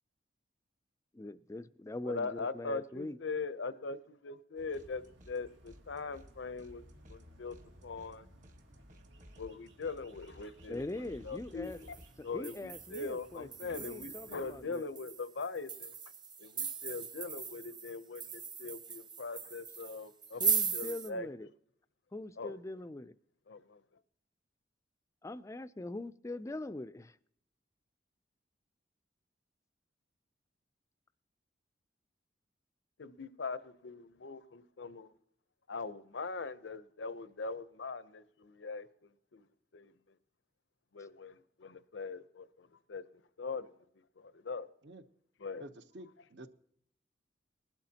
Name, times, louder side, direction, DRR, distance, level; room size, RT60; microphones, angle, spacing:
voice 1, 1.1-3.2 10.7-11.8 12.3-14.9 20.4-21.5 22.1-23.1 25.2-27.2, left 2 dB, 15° left, 0.4 m, -42 dB
voice 2, 2.0-7.6 7.8-8.3 9.4-10.8 11.2-12.0 12.2-15.9 16.4-20.4 20.7-21.5 22.4-22.6 23.5-23.8 33.0-35.1 35.7-39.4 39.7-39.9 40.9-43.0 43.4-43.7 44.2-44.7 45.4-45.6, left 4 dB, 85° left, 0.7 m, -41 dB
sound 1, 4.5-14.7, equal, 85° right, 1.8 m, -60 dB
sound 2, 4.7-5.4 5.6-12.1, equal, 45° right, 1.5 m, -58 dB
sound 3, 11.7-12.0 12.4-21.1, right 5 dB, 25° right, 0.9 m, -38 dB
voice 3, 45.6-46.5, right 1 dB, 65° right, 0.8 m, -50 dB
20.0 x 12.0 x 2.8 m
head